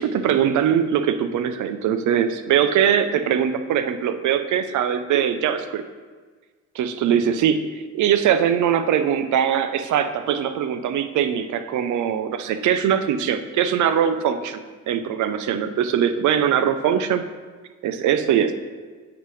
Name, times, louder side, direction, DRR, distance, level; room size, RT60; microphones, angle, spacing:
voice 1, 0.0-5.8 6.8-7.6 7.9-14.6 14.9-17.2 17.8-18.5, right 9 dB, 75° right, 10 dB, 0.6 m, -21 dB
8.0 x 6.8 x 3.2 m, 1.5 s
cardioid pair, 90°, 30 cm